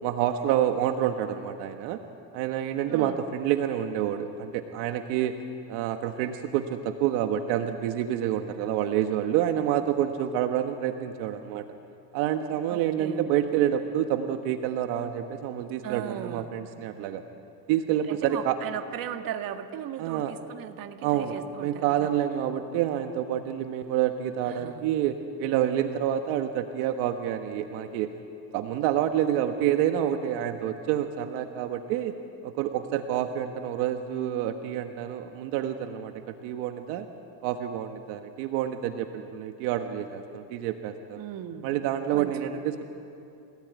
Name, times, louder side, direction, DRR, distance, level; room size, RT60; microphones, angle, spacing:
voice 1, 0.0-2.0 2.3-5.4 5.7-11.7 12.1-17.2 17.7-18.6 20.0-20.3 21.0-28.1 28.5-32.2 32.4-37.1 37.4-41.2 41.6-42.8, right 10 dB, 80° right, 6 dB, 1.4 m, -28 dB
voice 2, 2.9-3.2 12.7-13.2 15.8-16.5 18.1-22.1 24.5-24.8 41.2-41.8 42.1-42.6, right 10 dB, 55° right, 6 dB, 1.9 m, -37 dB
29.5 x 17.5 x 9.4 m, 2.7 s
supercardioid pair, 110°, 42 cm